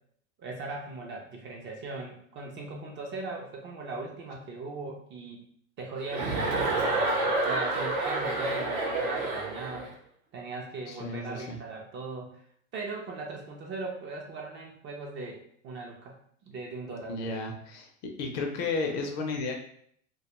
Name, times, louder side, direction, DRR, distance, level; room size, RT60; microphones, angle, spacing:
voice 1, 0.4-5.4 5.8-9.9 10.3-12.4 12.7-16.1 16.4-17.3, right 3 dB, 30° right, -1 dB, 0.4 m, -39 dB
Chuckle chortle, 6.1-9.9, right 2 dB, 80° right, 0.9 m, -28 dB
voice 2, 10.9-11.6 17.1-17.9 18.2-19.6, left 3 dB, 40° left, 2 dB, 0.5 m, -33 dB
2.2 x 2.1 x 2.9 m, 0.64 s
hypercardioid pair, 115°, 40 cm